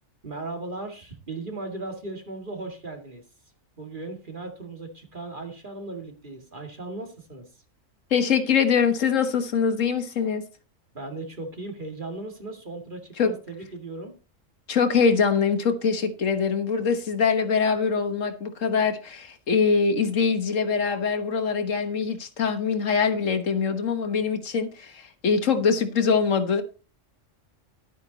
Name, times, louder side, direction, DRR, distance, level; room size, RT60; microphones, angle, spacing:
voice 1, 0.2-3.2 3.8-7.5 10.9-14.1, right 2 dB, 40° right, 3 dB, 2.4 m, -37 dB
voice 2, 8.1-10.4 13.2-13.3 14.7-26.6, left 6 dB, 85° left, 9 dB, 1.7 m, -23 dB
12.0 x 8.9 x 4.0 m, 0.34 s
omnidirectional pair, 1.3 m